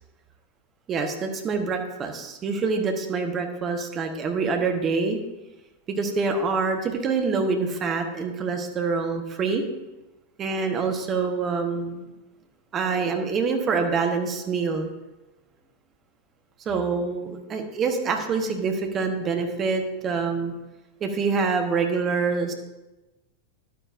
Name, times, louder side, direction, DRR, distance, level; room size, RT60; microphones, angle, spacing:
voice 1, 0.9-5.2 5.9-9.6 10.4-12.1 12.7-14.9 16.6-20.5 21.0-22.5, right 4 dB, 25° right, 5 dB, 1.1 m, -26 dB
11.0 x 9.4 x 2.6 m, 1.0 s
figure-of-eight pair, 90°, 0 cm